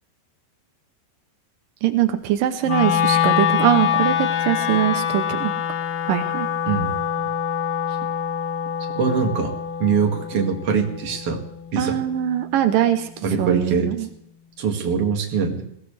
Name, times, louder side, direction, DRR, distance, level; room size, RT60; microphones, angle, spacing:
voice 1, 1.8-5.5 6.1-6.5 11.8-13.1 13.4-14.1, right 11 dB, 90° right, 8 dB, 1.9 m, -22 dB
Wind instrument woodwind instrument, 2.6-12.8, left 9 dB, 70° left, 3.0 m, -25 dB
voice 2, 6.7-7.0 8.9-9.5 9.8-11.4 11.7-12.0 13.2-13.9 14.6-15.6, right 5 dB, 40° right, 2 dB, 2.4 m, -22 dB
22.0 x 17.5 x 3.4 m, 0.73 s
omnidirectional pair, 5.2 m